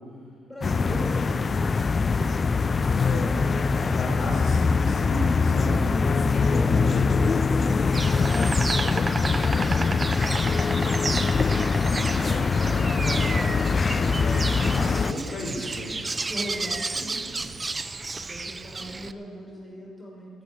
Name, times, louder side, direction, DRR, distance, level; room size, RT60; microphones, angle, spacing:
voice 1, 0.5-2.4 7.2-10.7 16.3-17.6 18.1-20.4, equal, 10° left, -3 dB, 5.1 m, -40 dB
sound 1, 0.6-15.1, left 4 dB, 35° left, 0.5 m, -23 dB
voice 2, 3.0-7.0 11.8-15.9, left 1 dB, 55° left, -1 dB, 5.1 m, -34 dB
Insect, 7.9-19.1, right 3 dB, 25° right, 0.7 m, -32 dB
13.0 x 11.5 x 8.6 m, 2.2 s
cardioid pair, 90°, 0 cm